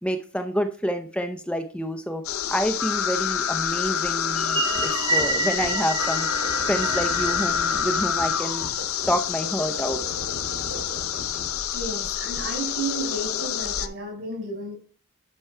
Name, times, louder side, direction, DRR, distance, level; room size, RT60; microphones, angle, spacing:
voice 1, 0.0-6.3 6.7-8.7 9.1-10.0, equal, 5° left, 7 dB, 0.6 m, -28 dB
sound 1, 2.2-13.9, left 8 dB, 70° left, 0.8 m, -27 dB
sound 2, 4.4-8.9, right 3 dB, 25° right, 1.0 m, -29 dB
sound 3, 4.7-11.5, right 1 dB, 80° right, 3.5 m, -39 dB
voice 2, 11.7-14.7, right 2 dB, 65° right, 1 dB, 5.7 m, -32 dB
12.0 x 6.0 x 4.4 m, 0.42 s
head